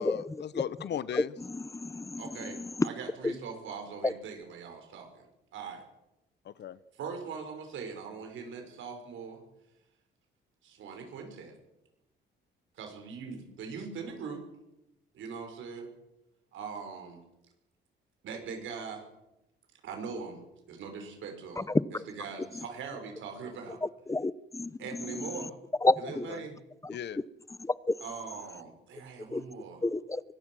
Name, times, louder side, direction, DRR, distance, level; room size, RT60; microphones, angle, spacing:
voice 1, 0.0-1.3 6.5-6.8 26.3-26.5 26.9-27.2, left 9 dB, 60° left, 17 dB, 0.8 m, -37 dB
voice 2, 1.5-2.2 2.6-2.9 3.2-3.3 4.0-4.1 21.6-21.7 24.1-24.7 25.8-26.3 26.8-26.9 27.6-27.7 29.3-29.4 29.8-30.2, left 2 dB, 15° left, 19 dB, 0.8 m, -29 dB
voice 3, 2.2-5.2 5.5-5.8 7.0-9.4 10.6-11.5 12.8-14.4 15.1-15.9 16.5-17.2 18.2-19.0 19.8-23.8 24.8-25.6 26.0-26.6 28.0-29.9, right 5 dB, 80° right, 5 dB, 5.7 m, -41 dB
24.0 x 19.5 x 6.3 m, 0.91 s
cardioid pair, 90°, 20 cm